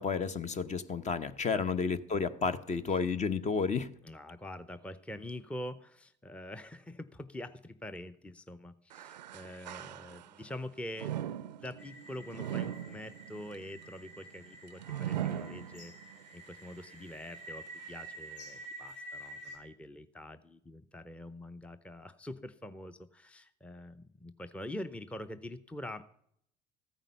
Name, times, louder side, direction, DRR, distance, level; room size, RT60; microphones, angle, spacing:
voice 1, 0.0-3.9, left 5 dB, 35° left, 0.9 m, -31 dB
voice 2, 4.0-26.2, left 1 dB, 5° left, 0.7 m, -45 dB
sound 1, 8.9-10.5 10.9-16.2 16.7-16.8 17.7-17.8, right 11 dB, 90° right, 0.4 m, -40 dB
sound 2, 11.8-19.6, right 1 dB, 65° left, 5.8 m, -49 dB
14.5 x 9.1 x 5.6 m
hypercardioid pair, 60°, 21 cm